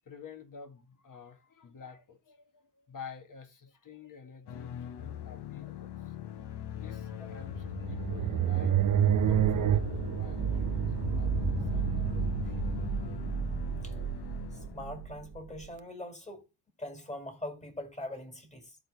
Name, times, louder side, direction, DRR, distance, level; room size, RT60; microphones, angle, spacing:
voice 1, 0.1-6.2 6.7-8.8 9.3-12.6, left 6 dB, 50° left, 1.8 m, -50 dB
sound 1, 4.5-15.2, left 10 dB, 70° left, 0.9 m, -39 dB
sound 2, 7.3-15.6, right 11 dB, 50° right, 0.6 m, -30 dB
voice 2, 14.7-16.4 16.8-18.8, left 1 dB, 15° left, 2.2 m, -42 dB
13.5 x 4.6 x 3.4 m
cardioid pair, 90°, 41 cm